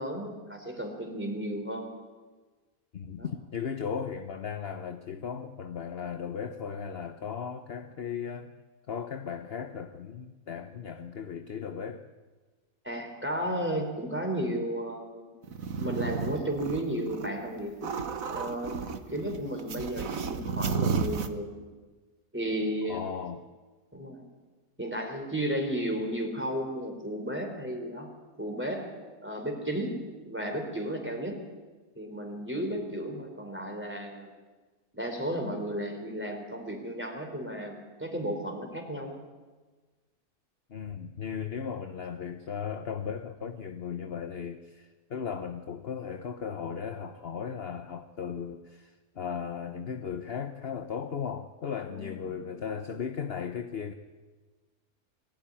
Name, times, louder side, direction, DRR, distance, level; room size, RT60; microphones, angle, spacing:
voice 1, 0.0-1.9 3.2-3.3 12.8-15.4 15.8-17.9 18.3-21.5 22.3-23.1 23.9-24.2 24.8-28.1 28.4-28.9 29.2-31.4 31.9-34.3 34.9-39.2 51.9-52.6, equal, 5° right, 2 dB, 4.2 m, -34 dB
voice 2, 2.9-8.5 8.9-12.0 22.9-23.4 40.7-53.9, left 7 dB, 45° left, 8 dB, 1.1 m, -36 dB
sound 1, 15.4-17.3 17.6-21.3, right 6 dB, 65° right, 1.6 m, -32 dB
23.0 x 15.0 x 10.0 m, 1.3 s
omnidirectional pair, 1.6 m